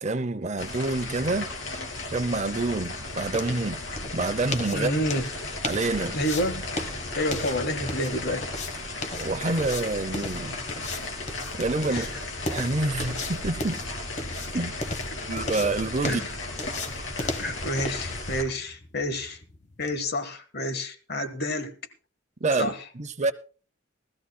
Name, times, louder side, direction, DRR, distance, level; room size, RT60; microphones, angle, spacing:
voice 1, 0.0-1.5 2.1-3.8 4.1-4.9 5.6-6.2 9.1-10.6 11.6-12.1 12.5-13.8 14.5-14.8 15.3-16.2 22.4-23.3, right 2 dB, 35° right, 0.7 m, -27 dB
sound 1, 0.6-18.4, left 2 dB, 85° left, 2.8 m, -35 dB
sound 2, 2.2-20.0, left 2 dB, 35° left, 1.1 m, -37 dB
voice 2, 4.7-5.3 6.1-6.6 7.2-8.5 11.9-12.1 16.1-16.3 17.2-19.4 19.8-21.7 22.6-22.8, left 1 dB, 55° left, 1.4 m, -29 dB
19.5 x 14.0 x 2.2 m
head